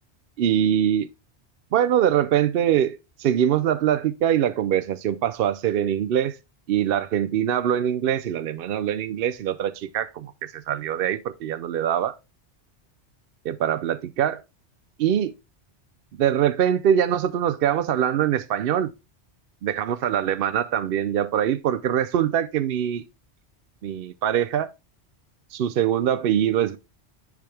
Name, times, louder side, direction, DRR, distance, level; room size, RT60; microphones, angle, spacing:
voice 1, 0.4-1.1 1.7-6.4 6.7-12.1 13.5-14.4 15.0-15.3 16.2-18.9 19.6-23.0 23.8-24.7 25.5-26.8, right 10 dB, 65° right, 0.7 m, -23 dB
10.0 x 4.9 x 3.3 m
omnidirectional pair, 1.1 m